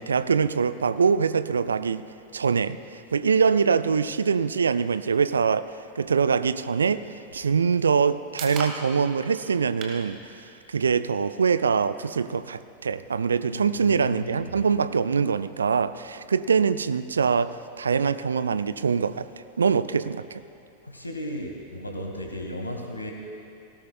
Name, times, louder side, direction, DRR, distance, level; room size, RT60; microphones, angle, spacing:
voice 1, 0.0-2.0 2.3-2.8 3.1-5.7 6.0-10.3 10.7-19.3 19.6-20.4, right 6 dB, 70° right, 14 dB, 0.4 m, -24 dB
sound 1, 7.6-21.5, right 4 dB, 35° right, 1.6 m, -47 dB
voice 2, 13.5-14.6 20.8-23.1, left 1 dB, 85° left, 3 dB, 1.5 m, -35 dB
18.5 x 17.5 x 2.3 m, 2.7 s
figure-of-eight pair, 90°, 0 cm